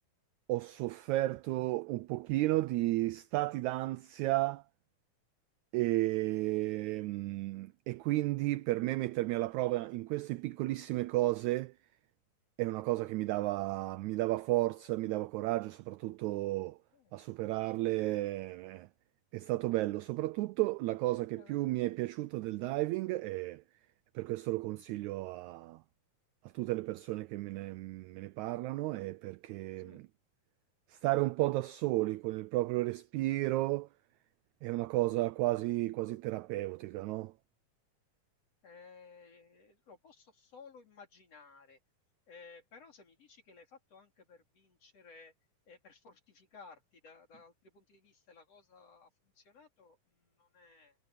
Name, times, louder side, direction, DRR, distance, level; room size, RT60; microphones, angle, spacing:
voice 1, 0.5-4.6 5.7-11.7 12.6-16.8 17.1-18.9 19.3-23.6 24.1-25.8 26.5-30.1 30.9-33.9 34.6-37.3, right 18 dB, 85° right, 1.6 m, -33 dB
voice 2, 38.6-41.8 42.3-45.3 45.7-51.0, left 4 dB, 45° left, 4.6 m, -57 dB
omnidirectional pair, 3.8 m